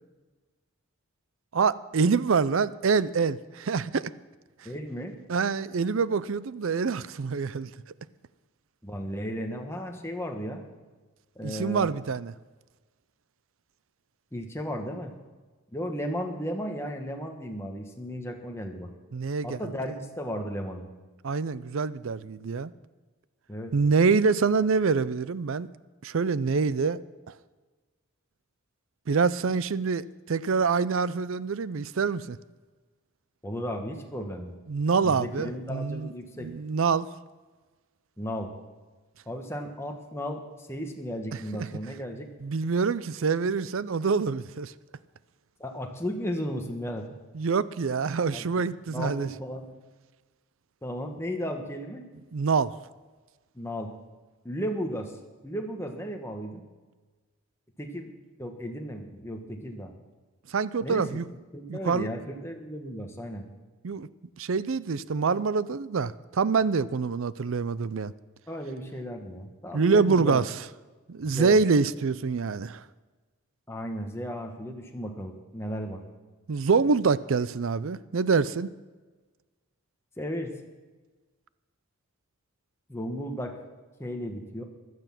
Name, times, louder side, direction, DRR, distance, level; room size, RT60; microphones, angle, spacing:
voice 1, 1.5-4.1 5.3-7.7 11.4-12.3 19.1-19.7 21.2-22.7 23.7-25.7 26.0-27.0 29.1-32.4 34.7-36.1 36.4-37.1 41.5-41.7 42.4-44.7 47.3-49.3 52.3-52.7 60.5-61.3 61.7-62.1 63.8-64.1 64.4-68.1 69.7-70.6 71.1-72.8 76.5-78.7, right 5 dB, 60° right, 0.5 m, -26 dB
voice 2, 4.6-5.2 8.8-10.6 11.3-11.9 14.3-15.1 15.7-18.9 19.4-20.9 23.5-23.7 33.4-34.5 35.0-36.5 38.2-38.5 39.3-40.4 40.7-42.3 45.6-47.1 48.3-48.4 48.9-49.7 50.8-52.1 53.5-53.9 54.4-55.1 55.4-56.6 57.8-58.1 58.4-59.9 60.8-61.2 61.5-63.5 68.5-70.4 71.2-71.6 73.7-76.0 80.2-80.5 82.9-83.6 84.0-84.6, equal, 10° left, 1.4 m, -34 dB
16.0 x 12.0 x 5.9 m
head